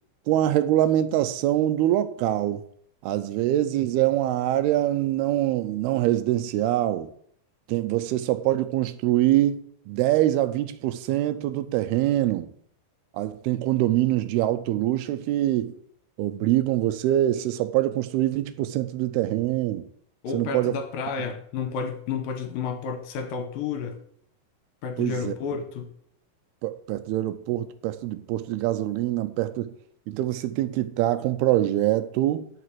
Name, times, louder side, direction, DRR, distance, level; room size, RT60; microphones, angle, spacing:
voice 1, 0.3-2.6 3.0-7.1 7.7-9.6 9.9-12.5 13.1-15.7 16.2-19.9 20.3-20.8 25.0-25.3 26.6-29.7 30.1-32.5, right 13 dB, 85° right, 2.6 m, -24 dB
voice 2, 20.2-24.0 24.8-25.9, left 6 dB, 70° left, 2.4 m, -31 dB
9.5 x 6.0 x 7.4 m
omnidirectional pair, 4.6 m